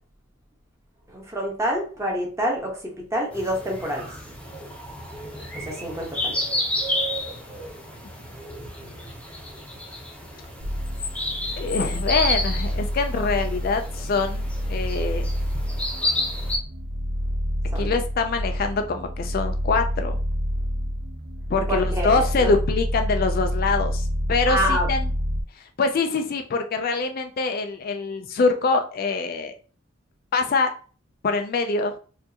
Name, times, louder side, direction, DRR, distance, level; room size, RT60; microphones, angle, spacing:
voice 1, 1.1-2.7 3.1-4.1 5.7-6.3 17.7-17.9 21.7-22.5 24.5-24.9, equal, 15° right, -1 dB, 1.0 m, -27 dB
sound 1, 3.3-16.6, left 1 dB, 5° left, 0.7 m, -31 dB
sound 2, 10.6-25.4, equal, 85° right, 0.7 m, -28 dB
voice 2, 11.6-15.2 17.8-20.2 21.5-25.1 25.8-29.5 30.3-30.7 31.2-31.9, left 4 dB, 45° left, 6 dB, 0.3 m, -24 dB
4.5 x 2.5 x 2.8 m, 0.39 s
head